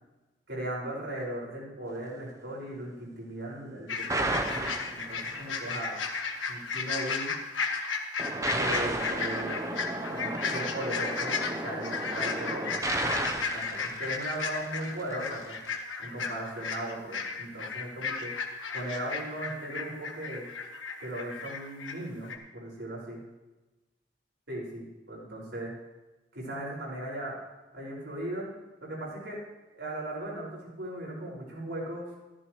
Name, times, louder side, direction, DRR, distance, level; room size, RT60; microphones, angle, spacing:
voice 1, 0.5-6.1 6.5-7.3 8.5-9.7 10.1-12.7 13.5-15.6 16.0-18.3 18.7-20.5 21.0-23.2 24.5-25.7 26.3-27.4 27.7-28.5 28.8-29.4 29.7-32.1, right 1 dB, 70° right, -4 dB, 5.2 m, -37 dB
sound 1, 3.9-22.0 22.2-22.3, left 5 dB, 90° left, 1.4 m, -34 dB
sound 2, 4.1-5.5 8.2-14.7, right 2 dB, 15° right, 0.7 m, -33 dB
15.0 x 14.0 x 3.1 m, 1.1 s
head